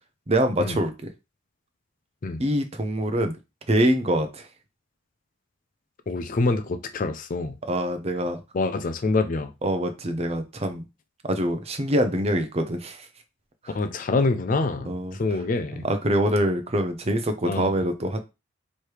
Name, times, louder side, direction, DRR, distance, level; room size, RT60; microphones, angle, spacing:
voice 1, 0.3-1.1 2.4-3.3 3.7-4.5 7.7-8.4 9.6-10.8 11.2-13.1 13.6-13.7 14.9-15.2 15.7-18.2, right 1 dB, 30° right, 0.6 m, -24 dB
voice 2, 6.1-7.6 8.5-9.5 13.7-15.8 17.5-17.7, left 3 dB, 40° left, 0.4 m, -26 dB
3.2 x 3.2 x 4.6 m
head